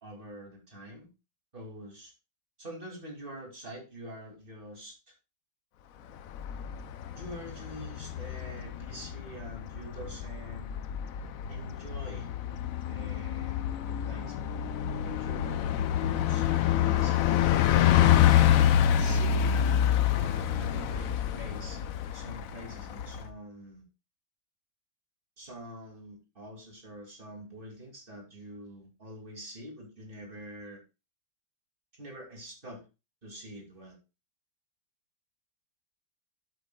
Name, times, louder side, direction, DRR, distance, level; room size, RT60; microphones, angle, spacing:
voice 1, 0.0-1.1 1.5-2.1 2.6-5.1 7.1-10.7 11.5-12.3 12.9-14.5 15.0-15.8 16.0-18.6 19.0-21.8 22.1-23.8 25.4-30.8 31.9-32.8 33.2-34.0, equal, 35° right, 0 dB, 2.8 m, -46 dB
Bus, 6.2-23.3, left 10 dB, 65° left, 1.0 m, -27 dB
11.5 x 8.1 x 2.3 m, 0.28 s
omnidirectional pair, 1.7 m